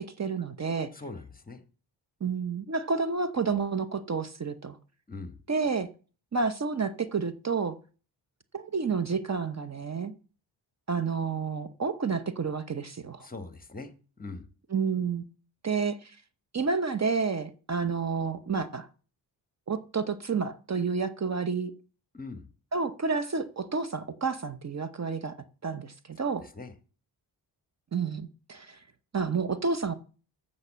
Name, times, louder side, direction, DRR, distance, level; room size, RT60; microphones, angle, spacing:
voice 1, 0.0-0.9 2.2-4.8 5.5-5.9 6.3-7.8 8.5-10.1 10.9-13.3 14.7-15.2 15.6-16.2 16.5-18.9 19.7-21.7 22.7-25.4 25.6-26.4 27.9-28.8 29.1-29.9, right 5 dB, 40° right, 0.9 m, -30 dB
voice 2, 0.9-1.6 5.1-5.4 13.2-13.9 14.2-14.5 22.1-22.5 26.4-26.7, left 3 dB, 20° left, 1.4 m, -41 dB
13.5 x 5.5 x 7.4 m
wide cardioid pair, 110°, 43 cm